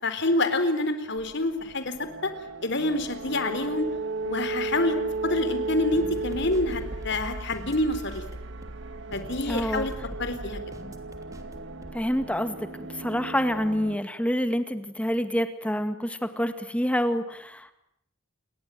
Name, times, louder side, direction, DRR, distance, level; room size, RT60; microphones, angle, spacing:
voice 1, 0.0-2.3 2.6-3.9 4.2-5.0 5.2-8.2 9.1-9.9 10.2-10.6, left 2 dB, 55° left, 10 dB, 4.0 m, -27 dB
sound 1, 1.2-14.0, right 3 dB, 60° right, 1.9 m, -35 dB
sound 2, 5.9-12.2, equal, 15° right, 3.1 m, -42 dB
voice 2, 9.5-9.9 11.9-12.7 12.9-17.7, equal, 5° left, 9 dB, 2.0 m, -27 dB
29.0 x 22.5 x 9.2 m, 0.75 s
head